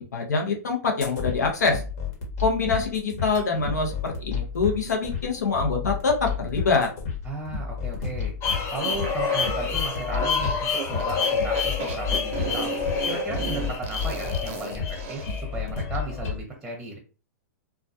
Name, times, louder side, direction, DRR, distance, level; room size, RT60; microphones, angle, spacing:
voice 1, 0.1-1.8 2.4-6.9, left 4 dB, 85° left, 2 dB, 0.8 m, -25 dB
sound 1, 1.0-16.4, left 6 dB, 60° left, 1.2 m, -32 dB
voice 2, 7.2-8.3 8.7-12.7 13.1-15.2 15.5-17.0, right 2 dB, 5° right, 1 dB, 0.8 m, -35 dB
sound 2, 8.4-16.3, left 6 dB, 30° left, 0.6 m, -29 dB
sound 3, 8.8-15.4, right 7 dB, 50° right, 0.5 m, -35 dB
2.3 x 2.2 x 2.6 m, 0.36 s
hypercardioid pair, 120°, 9 cm